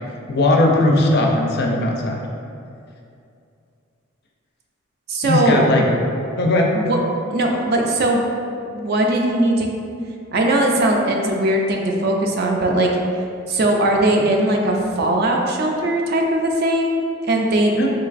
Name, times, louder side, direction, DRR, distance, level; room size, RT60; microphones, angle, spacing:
voice 1, 0.3-2.2 5.2-5.8 6.4-6.8 17.8-17.9, left 2 dB, 50° left, 0 dB, 0.4 m, -18 dB
voice 2, 5.1-5.6 6.7-7.0 7.3-8.2 8.7-9.7 10.3-12.9 13.5-17.7, right 1 dB, 50° right, 1 dB, 0.4 m, -19 dB
3.8 x 3.2 x 2.4 m, 2.5 s
head